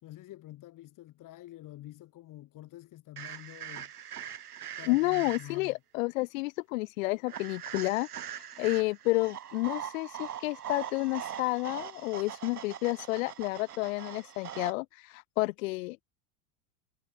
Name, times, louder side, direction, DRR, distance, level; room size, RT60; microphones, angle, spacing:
voice 1, 0.0-3.9 4.8-5.8, left 15 dB, 45° left, 5.7 m, -48 dB
sound 1, 3.2-5.7 7.3-14.7, right 9 dB, 85° right, 1.6 m, -42 dB
voice 2, 4.9-8.1 8.4-16.0, left 22 dB, 65° left, 0.5 m, -30 dB
hypercardioid pair, 90°, 44 cm